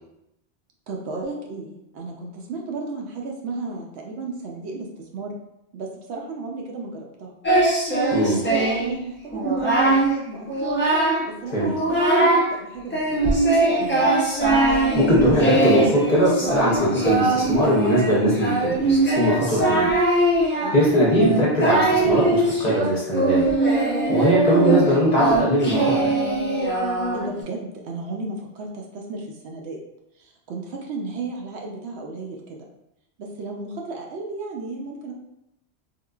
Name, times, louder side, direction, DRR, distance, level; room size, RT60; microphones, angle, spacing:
voice 1, 0.9-4.9 5.1-5.3 5.7-7.3 7.9-10.5 11.3-14.1 19.7-19.9 20.6-20.8 27.1-29.8 30.2-32.6 33.2-35.1, right 3 dB, 70° right, 0 dB, 0.8 m, -34 dB
Singing, 7.4-8.9 9.3-10.1 10.5-11.3 11.6-12.5 12.9-27.4, right 2 dB, 20° left, 0.3 m, -21 dB
voice 2, 14.9-19.9 20.7-23.4 23.8-26.2, equal, 40° left, -5 dB, 0.7 m, -20 dB
3.6 x 2.5 x 2.3 m, 0.85 s
omnidirectional pair, 1.2 m